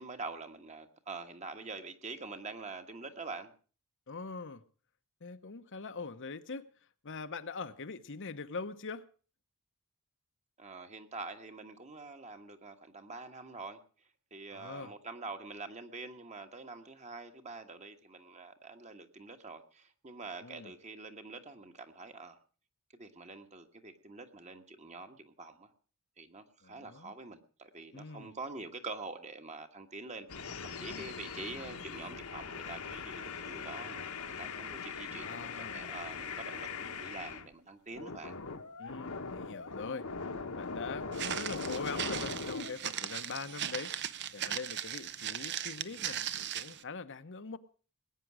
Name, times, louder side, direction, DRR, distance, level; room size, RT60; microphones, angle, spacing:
voice 1, 0.0-3.5 10.6-13.8 14.3-22.4 23.0-25.7 26.2-38.3, right 3 dB, 30° right, 6 dB, 1.5 m, -46 dB
voice 2, 4.1-4.6 5.2-6.6 7.0-9.0 14.5-14.9 20.4-20.7 26.6-27.1 27.9-28.3 30.9-31.1 35.1-35.9 38.8-40.1 40.5-47.6, left 4 dB, 55° left, 10 dB, 0.9 m, -43 dB
sound 1, 30.3-37.5 37.9-42.7, left 4 dB, 80° left, 1.5 m, -41 dB
Walk footsteps, 41.1-46.8, right 10 dB, 50° right, 0.8 m, -38 dB
20.0 x 9.3 x 6.2 m, 0.39 s
head